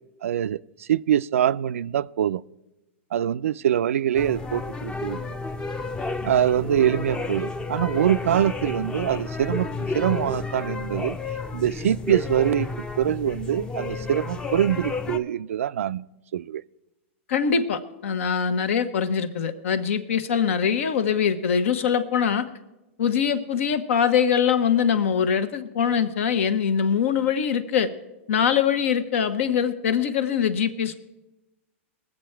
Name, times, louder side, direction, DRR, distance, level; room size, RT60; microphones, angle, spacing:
voice 1, 0.2-2.4 3.1-5.4 6.2-9.7 9.9-11.2 11.5-16.1 16.3-16.6, right 10 dB, 90° right, 0.3 m, -24 dB
sound 1, 4.1-15.2, left 3 dB, 10° left, 0.5 m, -31 dB
voice 2, 17.3-22.5 23.0-27.9 28.3-31.0, left 7 dB, 75° left, 1.1 m, -23 dB
20.0 x 7.7 x 4.5 m
hypercardioid pair, 135°, 7 cm